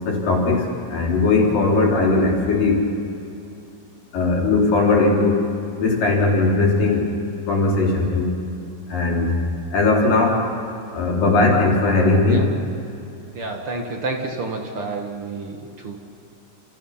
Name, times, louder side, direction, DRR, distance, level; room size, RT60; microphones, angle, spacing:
voice 1, 0.1-2.8 4.1-5.5 5.8-8.4 8.9-9.4 9.7-10.5 10.9-12.5, left 3 dB, 90° left, -2 dB, 5.8 m, -19 dB
voice 2, 13.3-16.0, right 3 dB, 45° right, 2 dB, 2.4 m, -29 dB
29.0 x 29.0 x 5.8 m, 2.7 s
omnidirectional pair, 3.8 m